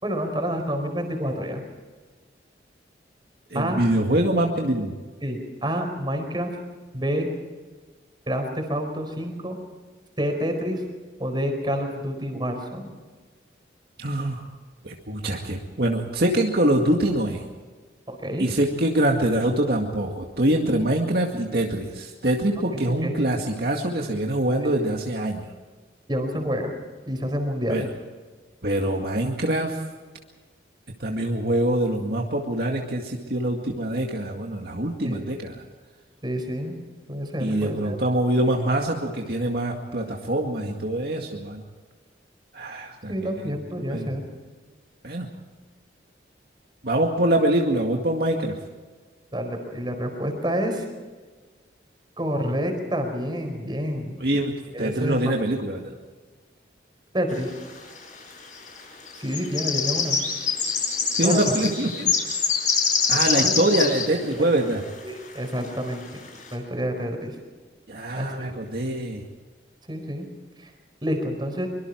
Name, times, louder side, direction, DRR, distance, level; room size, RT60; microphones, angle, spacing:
voice 1, 0.0-1.6 3.5-3.8 5.2-6.5 6.9-7.3 8.3-9.6 10.2-10.8 11.2-13.0 18.1-18.5 22.9-23.1 26.1-26.7 27.1-27.8 35.0-35.2 36.2-36.8 37.1-38.0 43.1-44.2 49.3-50.8 52.2-54.2 54.7-55.2 57.1-57.5 59.2-60.2 61.2-61.6 63.4-63.6 64.4-64.5 65.0-66.0 66.5-67.3 68.1-68.5 69.9-70.3 70.6-70.7 71.0-71.7, equal, 25° right, 4 dB, 4.7 m, -28 dB
voice 2, 3.5-4.9 14.0-14.5 14.8-17.4 18.4-25.5 27.7-27.9 28.6-29.8 31.0-35.6 37.4-41.6 42.5-43.5 43.9-44.1 45.0-45.3 46.8-48.6 54.2-55.9 61.2-62.1 63.1-64.8 67.9-69.2, right 1 dB, 55° right, 1 dB, 2.1 m, -24 dB
sound 1, 57.6-57.7 58.6-58.8 59.1-64.1 64.3-64.4 64.8-64.9 65.7-65.8 66.3-66.5, left 6 dB, 40° left, 6.7 m, -24 dB
24.0 x 23.5 x 4.7 m, 1.4 s
head